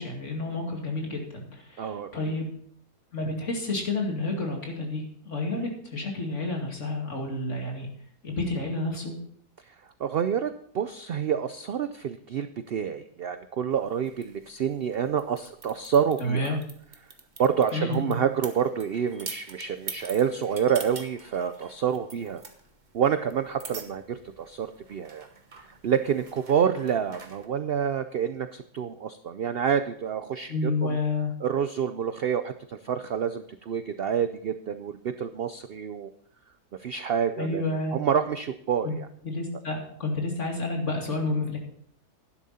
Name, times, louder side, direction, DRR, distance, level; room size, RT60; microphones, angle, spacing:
voice 1, 0.0-2.5 3.1-7.9 8.2-9.1 16.2-16.6 17.7-18.2 30.5-31.3 37.4-38.0 38.8-38.9 39.2-41.6, left 2 dB, 50° left, 0 dB, 2.7 m, -30 dB
voice 2, 1.8-2.4 5.5-5.7 10.0-16.6 17.4-22.4 22.9-25.3 25.8-31.0 31.4-34.9 35.2-36.1 36.8-39.1, right 8 dB, 75° right, 10 dB, 0.5 m, -28 dB
sound 1, 13.7-27.5, right 4 dB, 30° right, 1.2 m, -46 dB
12.0 x 10.5 x 4.2 m, 0.64 s
omnidirectional pair, 1.7 m